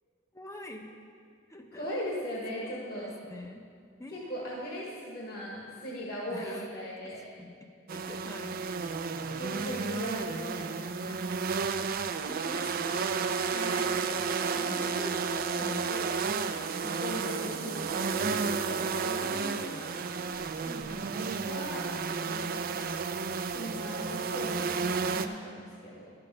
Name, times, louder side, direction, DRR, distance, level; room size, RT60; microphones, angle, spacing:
voice 1, 0.3-0.9 1.5-1.9 2.5-3.7 4.0-4.7 6.3-6.7 7.0-7.5 7.9-9.1 11.0-11.4 11.8-13.1 14.1-14.3 14.6-14.9 15.6-15.8 16.8-17.1 20.6-21.4, left 1 dB, 15° left, 4 dB, 0.6 m, -46 dB
voice 2, 1.7-3.1 4.1-7.2 9.4-11.1 12.2-12.6 13.5-13.8 14.4-16.1 16.9-20.0 21.4-21.9 22.2-22.6 23.5-26.1, equal, 50° left, -4 dB, 1.5 m, -39 dB
sound 1, 7.9-25.3, right 5 dB, 45° right, 0.4 m, -32 dB
12.0 x 6.9 x 5.4 m, 2.2 s
head